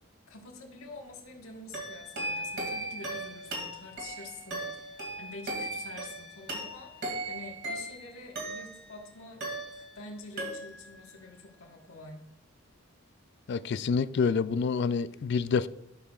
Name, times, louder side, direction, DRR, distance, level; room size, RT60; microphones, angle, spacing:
voice 1, 0.3-9.4 9.7-12.3, left 3 dB, 80° left, 1.5 m, -47 dB
sound 1, 1.7-9.0 9.4-10.1 10.4-11.0, right 1 dB, 55° right, 2.3 m, -37 dB
voice 2, 13.5-15.7, left 5 dB, 55° left, 0.3 m, -27 dB
11.5 x 6.6 x 2.4 m
head